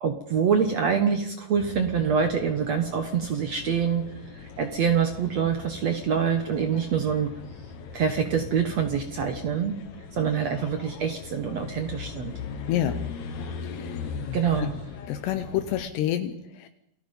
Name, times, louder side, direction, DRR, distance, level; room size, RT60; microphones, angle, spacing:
voice 1, 0.0-4.0 4.3-7.3 7.9-9.7 10.2-12.3 14.3-14.7, right 7 dB, 60° right, 6 dB, 1.8 m, -25 dB
sound 1, 1.6-15.9, left 6 dB, 55° left, 2.3 m, -39 dB
voice 2, 12.7-13.0 13.6-14.1 14.6-14.7 15.1-16.7, left 11 dB, 80° left, 8 dB, 3.1 m, -28 dB
28.5 x 18.5 x 5.4 m, 0.76 s
omnidirectional pair, 4.9 m